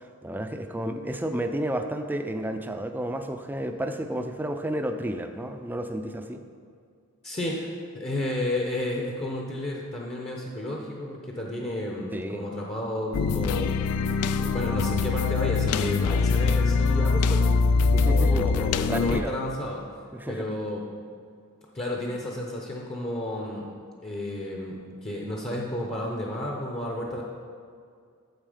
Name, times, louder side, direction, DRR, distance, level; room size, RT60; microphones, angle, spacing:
voice 1, 0.0-6.4 12.1-12.4 17.9-19.3 20.1-20.5, right 1 dB, 10° right, 6 dB, 0.4 m, -31 dB
voice 2, 7.2-7.7 7.9-14.1 14.4-17.5 18.0-19.8 20.3-20.8 21.7-23.7 24.0-27.2, left 1 dB, 25° left, -1 dB, 0.8 m, -32 dB
sound 1, 13.1-19.2, left 4 dB, 80° left, 0.4 m, -23 dB
9.1 x 7.3 x 5.0 m, 2.3 s
head